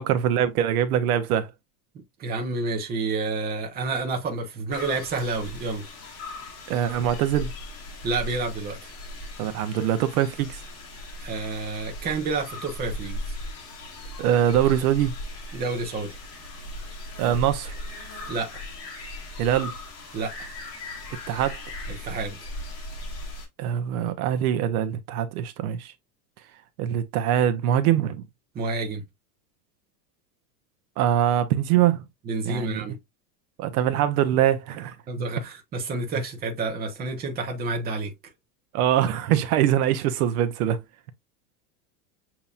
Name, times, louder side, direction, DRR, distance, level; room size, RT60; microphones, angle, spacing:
voice 1, 0.0-1.5 6.7-7.5 9.4-10.6 14.2-15.1 17.2-17.7 19.4-19.7 21.3-21.6 23.6-25.9 26.8-28.2 31.0-32.0 32.5-32.8 33.6-35.0 38.7-40.8, right 10 dB, 70° right, 0.8 m, -23 dB
voice 2, 2.2-5.8 8.0-8.9 11.2-13.4 15.5-16.2 18.3-18.6 20.1-20.3 21.9-22.4 28.5-29.0 32.2-32.9 35.1-38.1, right 3 dB, 20° right, 0.9 m, -29 dB
sound 1, 4.7-23.5, left 1 dB, 35° left, 1.7 m, -38 dB
6.9 x 2.9 x 2.4 m
supercardioid pair, 165°, 46 cm